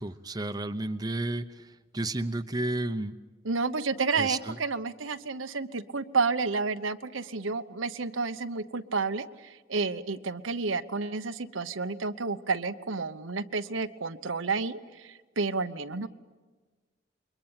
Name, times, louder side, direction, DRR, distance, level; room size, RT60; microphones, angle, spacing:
voice 1, 0.0-3.1 4.1-4.6, right 2 dB, 20° right, 9 dB, 0.8 m, -32 dB
voice 2, 3.4-16.1, right 4 dB, 85° right, 9 dB, 1.0 m, -31 dB
29.0 x 23.0 x 9.0 m, 1.3 s
head